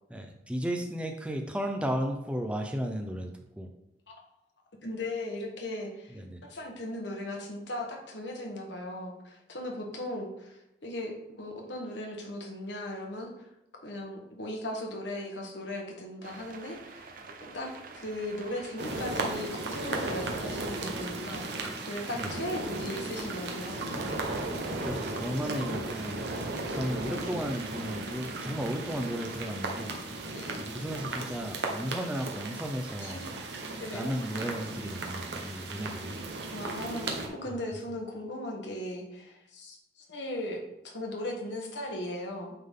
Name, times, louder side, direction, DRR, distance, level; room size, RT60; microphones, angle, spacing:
voice 1, 0.1-3.3 3.6-3.7 6.1-6.4 22.2-22.4 24.7-30.0 30.6-33.2 33.9-36.3, equal, 5° right, 4 dB, 0.6 m, -34 dB
voice 2, 4.8-13.5 13.8-23.9 30.3-30.6 33.0-33.3 33.8-34.1 36.5-37.1 37.4-42.5, left 1 dB, 75° left, 1 dB, 1.4 m, -38 dB
sound 1, 16.2-29.8, right 4 dB, 50° right, 0.6 m, -46 dB
sound 2, 18.8-37.3, right 2 dB, 70° right, 1.1 m, -36 dB
8.6 x 3.9 x 3.7 m, 0.83 s
head